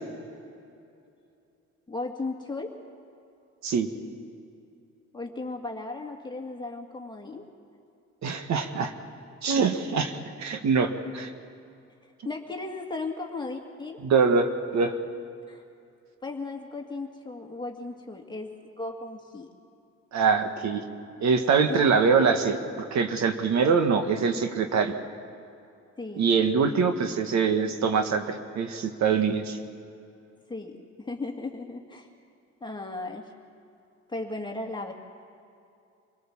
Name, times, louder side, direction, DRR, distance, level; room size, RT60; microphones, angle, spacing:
voice 1, 1.9-2.8 5.1-7.5 12.2-14.0 15.5-15.6 16.2-19.5 21.7-21.8 26.0-26.3 30.5-32.1 32.6-33.3 34.1-34.9, left 3 dB, 15° left, 1 dB, 1.9 m, -36 dB
voice 2, 8.2-8.9 9.4-10.1 10.4-11.3 14.0-15.0 20.1-20.8 21.2-22.6 22.9-24.9 26.2-29.6, right 5 dB, 70° right, 6 dB, 1.6 m, -24 dB
25.5 x 18.0 x 7.2 m, 2.6 s
cardioid pair, 95°, 29 cm